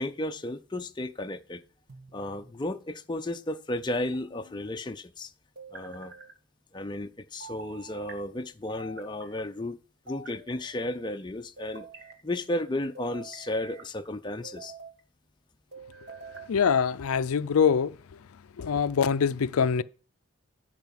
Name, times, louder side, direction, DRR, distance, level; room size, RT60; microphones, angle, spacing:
voice 1, 0.0-1.6 2.1-5.3 5.7-6.1 6.7-9.8 10.1-11.9 12.2-14.7, left 1 dB, 20° left, 0.5 m, -33 dB
sound 1, 1.9-2.6 3.9-4.7 5.6-6.3 7.4-8.2 8.8-9.4 10.1-10.9 11.6-12.2 12.9-13.9 14.4-15.0 15.7-16.5, right 3 dB, 50° right, 1.5 m, -47 dB
voice 2, 16.5-18.0 18.6-19.8, left 6 dB, 85° left, 0.5 m, -24 dB
11.0 x 4.9 x 7.5 m
head